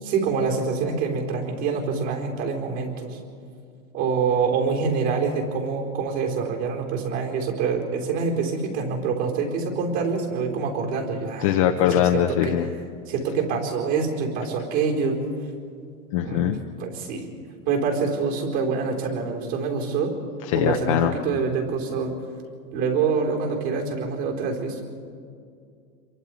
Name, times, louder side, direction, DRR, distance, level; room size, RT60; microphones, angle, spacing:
voice 1, 0.0-3.2 3.9-11.6 11.9-12.5 13.1-15.2 16.2-17.3 17.7-20.1 20.5-22.1 22.7-24.8, right 5 dB, 45° right, 1 dB, 4.5 m, -26 dB
voice 2, 11.4-12.7 16.1-16.6 20.5-21.1, left 10 dB, 25° left, 4 dB, 0.5 m, -21 dB
27.5 x 23.0 x 5.0 m, 2.3 s
supercardioid pair, 160°, 46 cm